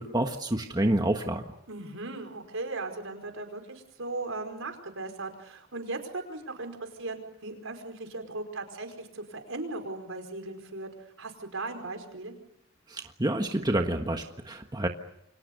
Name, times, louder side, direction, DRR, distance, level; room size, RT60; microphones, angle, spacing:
voice 1, 0.0-1.4 12.9-14.9, right 1 dB, 20° right, 4 dB, 1.5 m, -28 dB
voice 2, 1.7-10.9 11.2-12.4, right 2 dB, 75° right, 5 dB, 5.2 m, -37 dB
29.5 x 24.5 x 6.8 m, 0.76 s
head